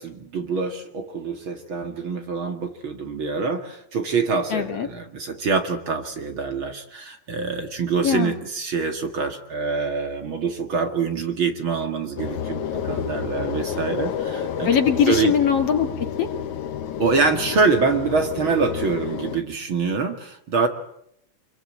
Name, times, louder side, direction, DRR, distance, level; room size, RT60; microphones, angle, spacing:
voice 1, 0.0-14.7 15.1-15.3 17.0-20.7, right 4 dB, 45° right, 6 dB, 2.6 m, -25 dB
voice 2, 4.5-4.9 8.0-8.3 14.6-16.3, left 7 dB, 55° left, 6 dB, 3.0 m, -21 dB
sound 1, 12.2-19.4, left 8 dB, 75° left, 2.9 m, -30 dB
26.5 x 22.5 x 8.8 m, 0.73 s
omnidirectional pair, 3.4 m